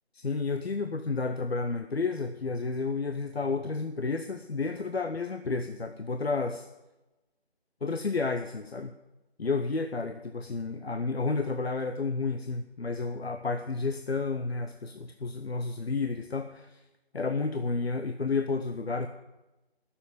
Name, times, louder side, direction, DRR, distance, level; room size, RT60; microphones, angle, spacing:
voice 1, 0.1-6.7 7.8-8.9 9.4-16.8 17.1-19.1, left 4 dB, 70° left, 8 dB, 0.9 m, -31 dB
13.0 x 7.3 x 9.2 m, 1.0 s
figure-of-eight pair, 165°, 32 cm